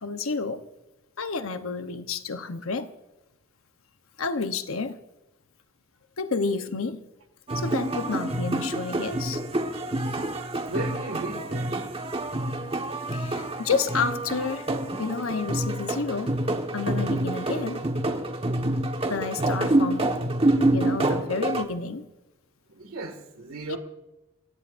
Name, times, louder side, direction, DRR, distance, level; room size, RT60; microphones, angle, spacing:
voice 1, 0.0-0.6 1.2-2.9 4.2-5.0 6.2-7.0 7.5-9.4 13.1-14.7 15.0-16.4 16.7-17.8 19.1-20.1 20.7-22.1 23.7-23.8, left 4 dB, 70° left, 1.0 m, -30 dB
sound 1, 7.5-21.6, right 1 dB, 30° right, 1.4 m, -27 dB
voice 2, 10.7-11.9 22.7-23.8, right 2 dB, 75° right, 2.1 m, -35 dB
28.0 x 16.5 x 2.6 m
head